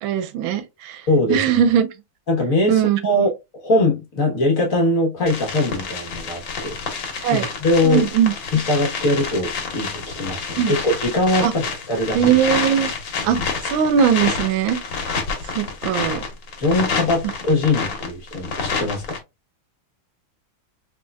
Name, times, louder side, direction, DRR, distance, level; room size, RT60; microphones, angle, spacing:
voice 1, 0.0-1.0 1.3-1.9 2.7-3.0 7.2-7.4 7.8-8.3 10.6-10.7 11.4-11.5 12.1-12.9 13.2-13.4 13.7-14.8 15.5-16.2, right 9 dB, 90° right, 1.4 m, -19 dB
voice 2, 1.1-1.6 2.3-6.8 7.3-8.1 8.5-12.3 13.2-13.4 16.6-19.2, left 1 dB, 50° left, 1.3 m, -21 dB
sound 1, 5.3-19.2, left 5 dB, 70° left, 1.7 m, -28 dB
4.4 x 3.0 x 2.2 m
omnidirectional pair, 2.1 m